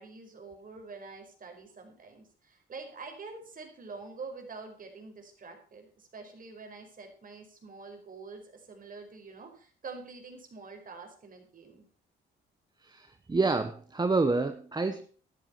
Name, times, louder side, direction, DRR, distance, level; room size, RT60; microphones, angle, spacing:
voice 1, 0.0-11.8, right 4 dB, 45° right, 4 dB, 4.9 m, -46 dB
voice 2, 12.8-15.1, right 3 dB, 20° right, 9 dB, 1.0 m, -28 dB
13.0 x 11.5 x 4.5 m, 0.40 s
cardioid pair, 90°, 20 cm